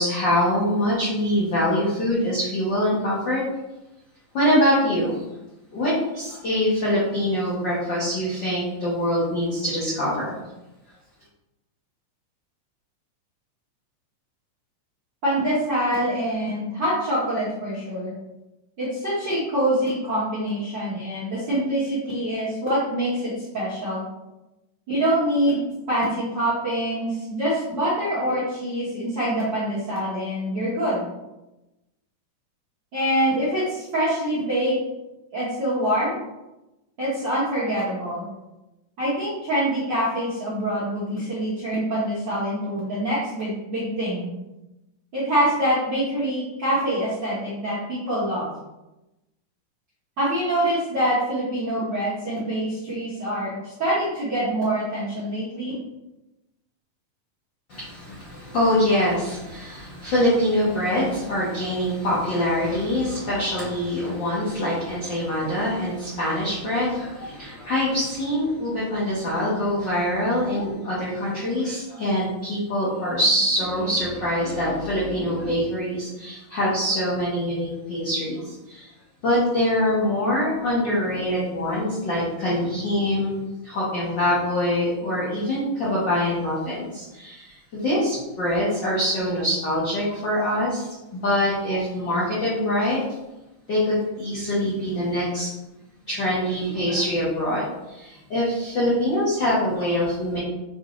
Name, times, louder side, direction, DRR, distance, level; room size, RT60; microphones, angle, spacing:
voice 1, 0.0-3.4 4.3-5.2 5.7-10.3 57.7-78.9 79.2-93.0 93.7-95.5 96.1-100.4, left 1 dB, 80° left, -8 dB, 1.0 m, -24 dB
voice 2, 15.2-18.1 18.8-24.0 24.9-31.0 32.9-34.8 35.3-36.2 37.0-38.2 39.0-44.3 45.1-48.5 50.2-55.7 70.6-70.7, right 1 dB, 65° right, -9 dB, 1.1 m, -25 dB
6.2 x 2.5 x 3.0 m, 0.97 s
omnidirectional pair, 3.7 m